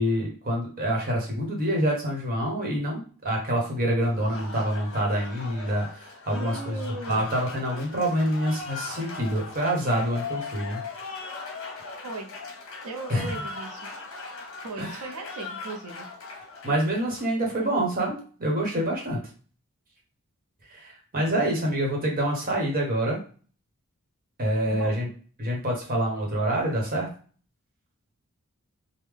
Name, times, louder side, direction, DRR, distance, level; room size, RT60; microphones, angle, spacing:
voice 1, 0.0-6.8 7.1-10.8 13.1-13.3 14.8-15.0 16.6-19.2 20.7-23.2 24.4-25.1 25.4-27.1, right 1 dB, 40° right, -1 dB, 1.1 m, -26 dB
Applause, 4.0-17.7, left 4 dB, 60° left, 0.9 m, -39 dB
voice 2, 6.3-7.2 12.0-12.3 12.8-13.9 14.6-16.1 24.7-25.0, right 2 dB, 90° right, 5 dB, 0.6 m, -37 dB
3.6 x 2.1 x 3.4 m, 0.41 s
head